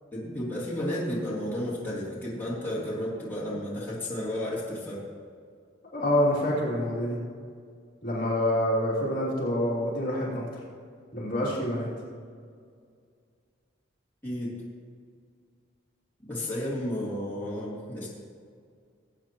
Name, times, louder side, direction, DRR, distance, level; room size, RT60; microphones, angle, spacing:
voice 1, 0.1-5.0 14.2-14.5 16.2-18.1, left 1 dB, 10° left, -8 dB, 3.1 m, -32 dB
voice 2, 5.9-7.2 8.0-10.4 11.1-11.9, left 1 dB, 50° left, -6 dB, 2.9 m, -26 dB
19.0 x 8.5 x 3.1 m, 2.1 s
head